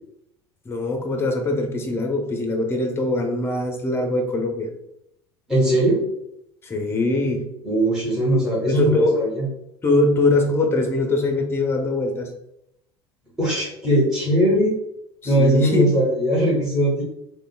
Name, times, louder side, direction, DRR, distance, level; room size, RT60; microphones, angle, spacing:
voice 1, 0.7-4.7 6.6-7.5 8.7-9.2 9.8-12.3 15.2-15.9, left 2 dB, 20° left, 3 dB, 0.6 m, -22 dB
voice 2, 5.5-6.0 7.6-9.5 13.4-14.7 15.2-17.0, right 1 dB, 5° right, -7 dB, 1.1 m, -20 dB
3.4 x 2.1 x 2.4 m, 0.79 s
hypercardioid pair, 75°, 14 cm